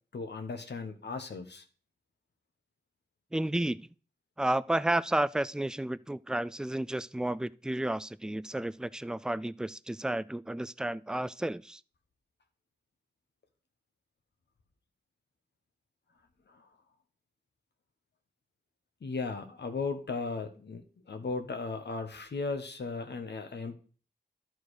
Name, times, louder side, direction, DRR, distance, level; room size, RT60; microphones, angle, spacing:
voice 1, 0.1-1.6 16.5-16.6 19.0-20.8 21.1-23.7, left 4 dB, 85° left, 1.1 m, -36 dB
voice 2, 3.3-3.8 4.4-11.8, right 1 dB, 5° right, 0.3 m, -32 dB
12.0 x 4.5 x 4.8 m
wide cardioid pair, 55°, 17 cm